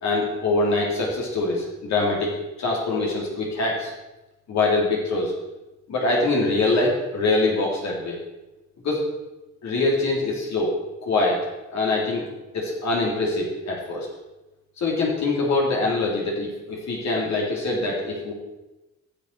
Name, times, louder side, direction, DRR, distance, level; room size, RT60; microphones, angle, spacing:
voice 1, 0.0-3.9 4.5-5.3 5.9-8.2 8.8-9.0 9.6-10.7 11.0-11.4 11.7-12.3 12.5-14.1 14.8-18.3, left 2 dB, 65° left, -3 dB, 2.7 m, -24 dB
14.5 x 6.7 x 4.4 m, 1.0 s
cardioid pair, 90°, 30 cm